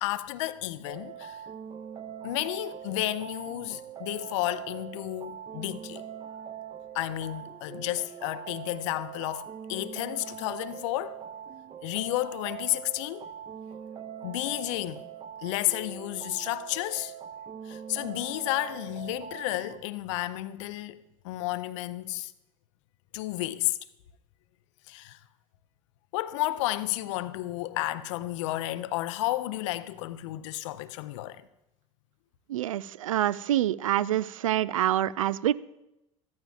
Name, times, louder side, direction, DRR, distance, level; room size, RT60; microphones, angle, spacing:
voice 1, 0.0-1.4 2.2-6.1 6.9-11.2 11.8-13.3 14.2-15.1 15.4-17.1 17.6-22.3 23.1-23.8 24.9-25.2 26.1-31.4, left 16 dB, 60° left, 0.6 m, -32 dB
sound 1, 0.8-19.8, right 9 dB, 30° right, 0.9 m, -42 dB
voice 2, 32.5-35.5, right 12 dB, 75° right, 0.4 m, -26 dB
14.5 x 14.0 x 2.4 m
figure-of-eight pair, 65°, 17 cm